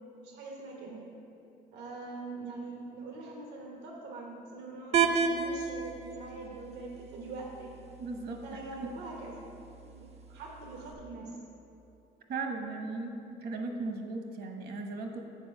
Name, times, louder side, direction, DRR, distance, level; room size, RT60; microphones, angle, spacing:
voice 1, 0.2-1.1 1.7-7.7 8.4-11.4, right 3 dB, 85° right, -1 dB, 1.2 m, -43 dB
sound 1, 4.9-10.9, right 6 dB, 40° right, 0.6 m, -34 dB
voice 2, 8.0-8.9 12.3-13.1 13.4-15.3, right 3 dB, 65° right, 4 dB, 1.1 m, -37 dB
7.9 x 4.3 x 6.4 m, 2.8 s
cardioid pair, 110°, 17 cm